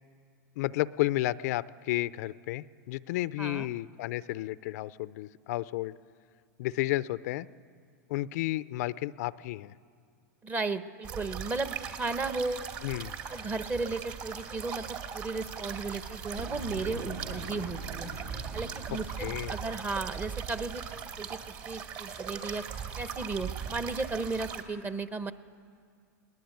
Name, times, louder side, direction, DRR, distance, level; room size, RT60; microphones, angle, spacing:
voice 1, 0.6-5.9 6.6-7.5 8.1-9.7 12.8-13.1 19.2-19.6, left 16 dB, 60° left, 16 dB, 0.5 m, -32 dB
voice 2, 10.4-12.6 13.3-18.1 18.5-22.6 23.0-25.3, right 3 dB, 20° right, 12 dB, 1.0 m, -35 dB
sound 1, 11.0-24.6, right 7 dB, 45° right, 2.6 m, -39 dB
Boom, 16.4-21.1, right 2 dB, 85° right, 3.8 m, -43 dB
21.5 x 19.5 x 9.4 m, 2.2 s
hypercardioid pair, 125°, 10 cm